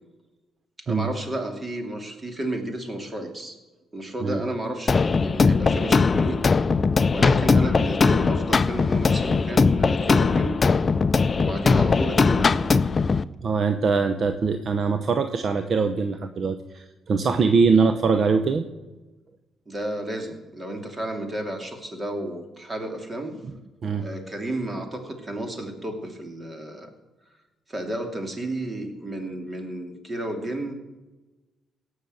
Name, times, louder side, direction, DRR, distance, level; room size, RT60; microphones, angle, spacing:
voice 1, 0.9-3.5 3.9-6.4 7.1-10.6 11.4-12.6 19.7-23.4 24.0-26.9 27.7-30.7, right 1 dB, 25° right, 5 dB, 2.6 m, -32 dB
sound 1, 4.9-13.2, left 4 dB, 35° left, 0.5 m, -20 dB
voice 2, 13.4-18.6 23.8-24.1, right 4 dB, 50° right, 8 dB, 0.8 m, -22 dB
17.0 x 6.4 x 7.9 m, 1.1 s
cardioid pair, 90°, 0 cm